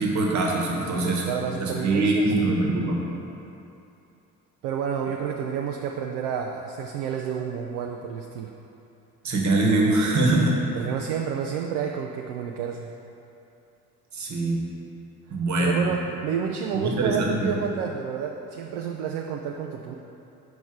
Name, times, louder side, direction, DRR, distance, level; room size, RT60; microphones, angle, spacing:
voice 1, 0.0-1.2 1.6-3.0 9.2-10.6 14.1-14.6 15.3-15.9 16.7-17.5, right 2 dB, 40° right, -1 dB, 1.3 m, -23 dB
voice 2, 0.9-2.5 4.6-8.5 10.7-12.9 15.6-19.9, right 7 dB, 65° right, 2 dB, 0.5 m, -30 dB
5.2 x 4.8 x 4.6 m, 2.8 s
figure-of-eight pair, 50°, 43 cm